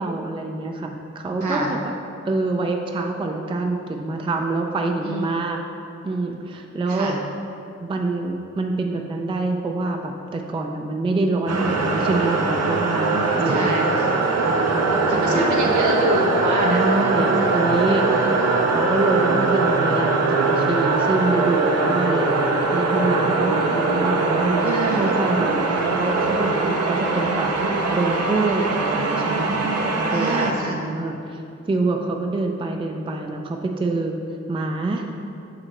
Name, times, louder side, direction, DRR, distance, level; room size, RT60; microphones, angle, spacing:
voice 1, 0.0-1.9 2.2-5.6 6.0-7.1 7.8-13.9 14.4-15.7 16.6-18.0 18.7-22.3 22.7-24.7 25.0-27.6 27.9-31.4 31.7-34.2 34.5-35.0, right 2 dB, 20° right, 3 dB, 0.4 m, -26 dB
voice 2, 1.4-1.8 5.0-5.3 6.9-7.2 13.5-14.1 15.1-16.8 17.4-18.5 24.6-25.2 30.1-30.8, right 1 dB, 85° right, -1 dB, 0.9 m, -27 dB
sound 1, 11.5-30.5, right 3 dB, 60° right, 0.7 m, -21 dB
6.4 x 5.0 x 4.2 m, 2.6 s
wide cardioid pair, 110°, 29 cm